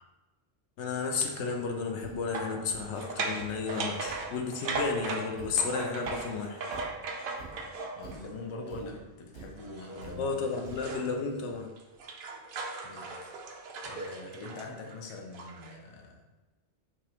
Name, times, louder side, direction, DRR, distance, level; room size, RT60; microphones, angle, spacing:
voice 1, 0.8-6.6 10.2-11.7, left 4 dB, 80° left, 3 dB, 0.9 m, -32 dB
sound 1, 1.3-1.6 2.3-8.3 9.6-11.1 11.5-15.8, right 3 dB, 60° right, 0.7 m, -38 dB
Thump thud, 2.0-11.2, right 3 dB, 85° right, 1.2 m, -51 dB
voice 2, 8.0-10.5 12.8-13.2 13.9-16.2, left 2 dB, 35° left, 1 dB, 0.5 m, -43 dB
5.3 x 3.0 x 2.9 m, 1.2 s
omnidirectional pair, 1.1 m